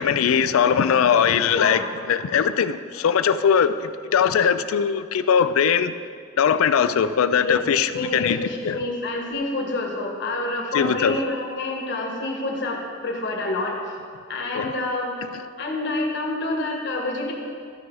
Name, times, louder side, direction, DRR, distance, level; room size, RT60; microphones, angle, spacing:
voice 1, 0.0-1.8 2.1-5.9 6.4-8.8 10.7-11.1 14.5-14.7, left 7 dB, 90° left, 13 dB, 0.4 m, -20 dB
voice 2, 1.5-1.8 7.4-7.5 7.9-13.9 14.3-15.1 15.6-17.3, left 2 dB, 60° left, 1 dB, 1.5 m, -27 dB
13.5 x 4.8 x 4.7 m, 2.2 s
head